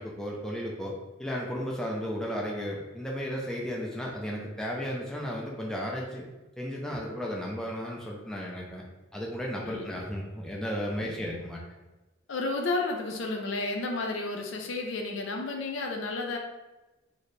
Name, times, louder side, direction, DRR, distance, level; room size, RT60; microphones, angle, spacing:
voice 1, 0.0-6.3 6.6-8.8 9.1-11.6, equal, 5° left, -3 dB, 0.4 m, -34 dB
voice 2, 9.6-10.0 11.2-11.4 12.3-16.4, left 3 dB, 70° left, 2 dB, 0.5 m, -32 dB
4.0 x 2.0 x 3.3 m, 1.1 s
head